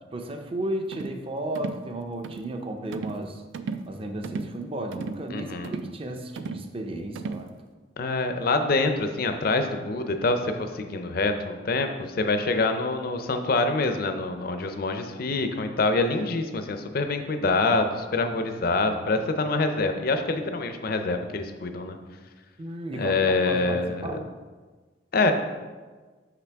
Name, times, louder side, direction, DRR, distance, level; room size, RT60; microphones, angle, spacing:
voice 1, 0.1-3.4 3.9-7.5 22.6-24.2, right 1 dB, 30° right, 5 dB, 0.5 m, -34 dB
sound 1, 0.9-1.2 1.5-1.9 2.2-2.5 2.9-3.3 3.5-3.9 4.2-4.6 4.9-5.2 5.6-6.0 6.4-6.7 7.1-7.5, right 4 dB, 85° right, 0.4 m, -35 dB
voice 2, 5.3-5.7 8.0-22.0 23.0-24.0 25.1-25.3, left 3 dB, 50° left, 7 dB, 0.5 m, -25 dB
5.9 x 5.8 x 3.4 m, 1.4 s
head